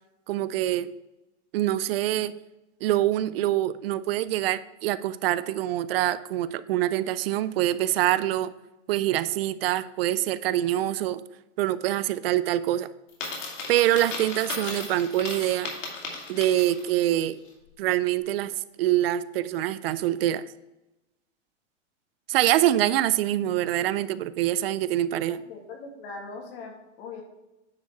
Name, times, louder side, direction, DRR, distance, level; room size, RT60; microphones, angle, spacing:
voice 1, 0.3-0.9 1.5-2.3 2.8-8.5 8.9-11.2 11.6-12.9 13.7-15.7 16.3-17.4 17.8-18.5 18.8-20.4 22.3-25.4, right 13 dB, 55° right, 16 dB, 0.4 m, -25 dB
Coin (dropping), 13.1-17.0, left 3 dB, 90° left, 2.6 m, -36 dB
voice 2, 25.3-27.2, left 4 dB, 50° left, 2 dB, 1.9 m, -41 dB
9.6 x 4.1 x 4.7 m, 1.0 s
supercardioid pair, 145°, 37 cm